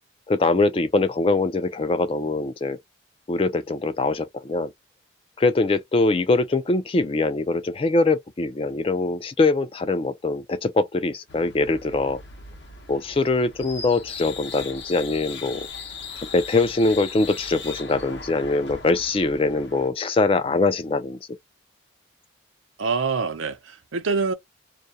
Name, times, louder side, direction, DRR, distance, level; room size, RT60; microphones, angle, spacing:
voice 1, 0.3-2.8 3.3-4.7 5.4-12.2 12.9-15.7 16.2-21.2, left 3 dB, 30° left, 0.3 m, -23 dB
sound 1, 11.3-19.9, left 5 dB, 60° left, 0.7 m, -39 dB
voice 2, 22.8-24.3, right 4 dB, 80° right, 0.6 m, -25 dB
2.3 x 2.0 x 2.7 m
head